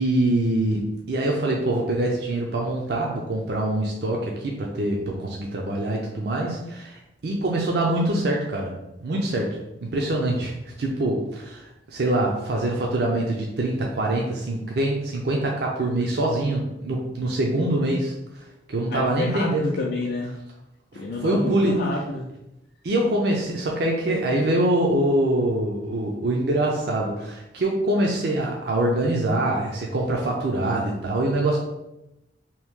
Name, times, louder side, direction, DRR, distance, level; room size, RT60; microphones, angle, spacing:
voice 1, 0.0-8.7 9.0-9.5 9.8-10.5 10.8-18.1 18.7-19.7 20.9-21.8 22.8-31.6, right 1 dB, 60° right, -1 dB, 0.5 m, -24 dB
voice 2, 18.9-20.3 20.9-22.3, left 2 dB, 55° left, -2 dB, 0.4 m, -29 dB
2.9 x 2.7 x 3.6 m, 0.90 s
head